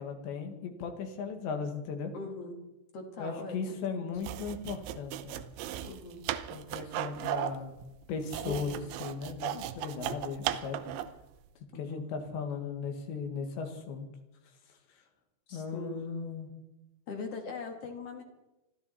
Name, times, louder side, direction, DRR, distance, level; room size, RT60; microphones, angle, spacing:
voice 1, 0.0-2.1 3.2-5.4 6.5-7.7 8.1-10.8 11.8-14.1 15.5-16.5, left 5 dB, 75° left, 5 dB, 3.9 m, -37 dB
voice 2, 2.1-2.6 2.9-3.6 3.9-4.0 5.8-6.2 8.5-8.8 11.7-12.1 15.5-16.1 17.1-18.2, left 3 dB, 50° left, 4 dB, 1.8 m, -41 dB
sound 1, 4.2-11.2, right 12 dB, 85° right, 3.2 m, -36 dB
24.5 x 13.5 x 4.2 m, 0.96 s
omnidirectional pair, 5.3 m